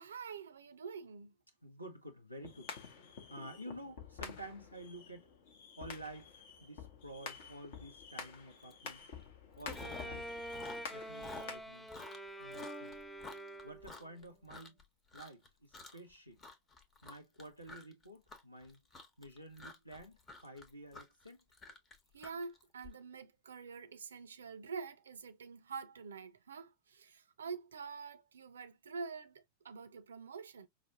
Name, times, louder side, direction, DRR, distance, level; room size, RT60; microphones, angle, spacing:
voice 1, 0.0-1.3 22.1-30.7, right 5 dB, 70° right, 0.5 m, -46 dB
voice 2, 1.6-2.7 3.3-5.3 5.8-9.0 9.6-10.3 10.9-11.9 12.4-13.0 13.6-14.7 15.1-16.4 17.0-18.8 19.2-21.4, right 1 dB, 90° left, 0.7 m, -50 dB
sound 1, 2.4-11.6, left 6 dB, 55° left, 0.8 m, -49 dB
Chewing mastication, 8.7-8.9 9.2-10.2 10.5-14.8 15.1-15.5 15.7-16.1 16.4-22.9, left 3 dB, 25° left, 0.8 m, -51 dB
Bowed string instrument, 9.7-14.1, right 1 dB, 5° left, 0.4 m, -46 dB
4.9 x 2.1 x 2.5 m
figure-of-eight pair, 90°, 0 cm